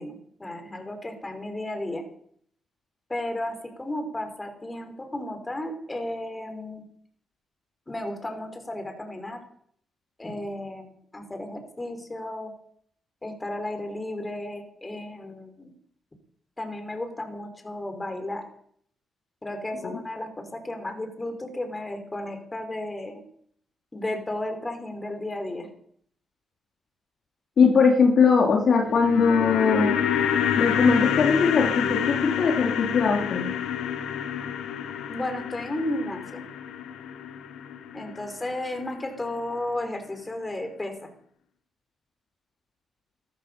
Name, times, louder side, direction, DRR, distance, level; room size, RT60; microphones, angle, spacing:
voice 1, 0.0-2.0 3.1-6.8 7.9-9.4 10.2-12.5 13.2-15.7 16.6-18.4 19.4-23.2 23.9-25.7 35.1-36.4 37.9-41.1, left 1 dB, 20° left, 6 dB, 5.4 m, -33 dB
voice 2, 27.6-29.9 30.6-33.5, left 5 dB, 60° left, 1 dB, 3.7 m, -20 dB
sound 1, 28.7-39.0 39.3-39.4, left 8 dB, 80° left, 1.4 m, -28 dB
14.5 x 14.0 x 7.1 m, 0.64 s
supercardioid pair, 55°, 0 cm